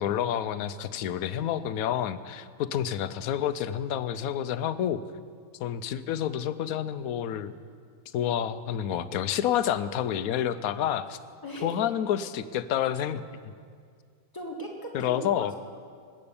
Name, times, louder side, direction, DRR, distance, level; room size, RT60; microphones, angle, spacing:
voice 1, 0.0-5.0 5.6-7.6 8.1-11.2 11.6-13.2 14.9-15.5, left 10 dB, 75° left, 13 dB, 1.0 m, -29 dB
voice 2, 11.4-11.8 14.3-15.6, equal, 15° left, -1 dB, 2.0 m, -38 dB
20.0 x 8.7 x 6.9 m, 2.1 s
omnidirectional pair, 1.6 m